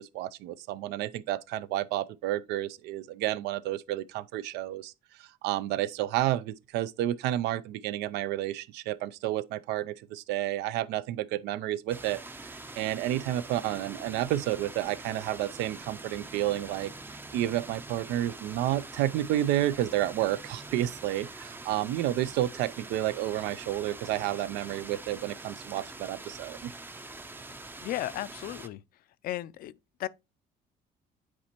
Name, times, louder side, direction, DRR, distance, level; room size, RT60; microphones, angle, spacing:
voice 1, 0.0-4.9 5.2-16.9 17.3-26.7, right 13 dB, 90° right, 0.4 m, -31 dB
sound 1, 11.9-28.7, right 2 dB, 10° right, 0.5 m, -44 dB
voice 2, 27.8-28.8 29.2-29.7 30.0-30.1, left 14 dB, 60° left, 0.4 m, -34 dB
8.5 x 4.3 x 2.9 m
cardioid pair, 110°, 17 cm